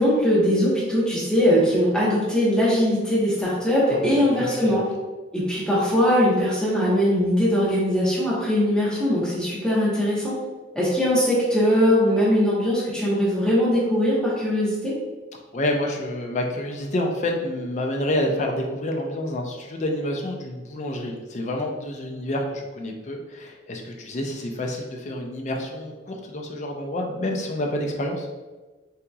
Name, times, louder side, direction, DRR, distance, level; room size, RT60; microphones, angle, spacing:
voice 1, 0.0-4.8 5.3-10.3 10.7-14.9, equal, 5° left, -8 dB, 0.8 m, -21 dB
voice 2, 3.9-4.8 15.5-28.3, left 1 dB, 40° left, 1 dB, 0.4 m, -28 dB
3.7 x 2.8 x 2.3 m, 1.2 s
head